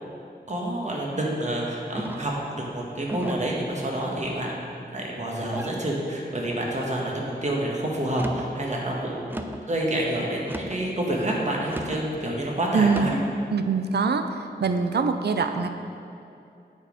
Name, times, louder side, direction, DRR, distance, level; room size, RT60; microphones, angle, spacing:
voice 1, 0.5-4.5 4.9-9.3 9.7-13.1, right 1 dB, 40° right, -3 dB, 1.4 m, -28 dB
sound 1, 1.9-2.4 3.1-3.5 4.2-4.7 5.4-5.8 6.5-6.9 8.0-8.5 9.3-9.7 10.4-10.9 11.7-12.0 12.9-13.3, right 1 dB, 10° right, 0.4 m, -36 dB
voice 2, 12.7-13.2 13.5-15.7, right 5 dB, 70° right, 8 dB, 0.5 m, -24 dB
9.1 x 4.2 x 5.1 m, 2.7 s
wide cardioid pair, 75°, 18 cm